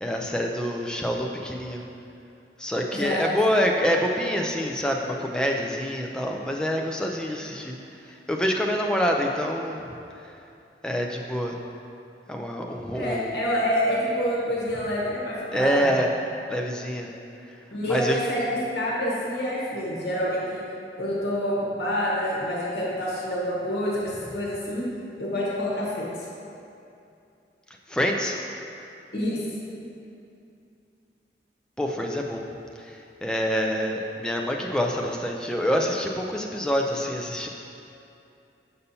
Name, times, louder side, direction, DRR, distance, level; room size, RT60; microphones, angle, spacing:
voice 1, 0.0-1.8 2.6-7.8 8.1-9.9 10.2-10.3 10.8-11.6 12.3-13.4 15.5-16.1 16.5-17.1 17.9-18.2 27.9-28.4 31.8-32.4 32.8-37.5, equal, 5° left, 1 dB, 0.3 m, -26 dB
voice 2, 2.9-3.3 12.9-15.9 17.7-20.6 21.0-24.8 25.2-26.1 29.1-29.4, equal, 75° left, -6 dB, 1.2 m, -27 dB
6.7 x 5.5 x 2.7 m, 2.7 s
head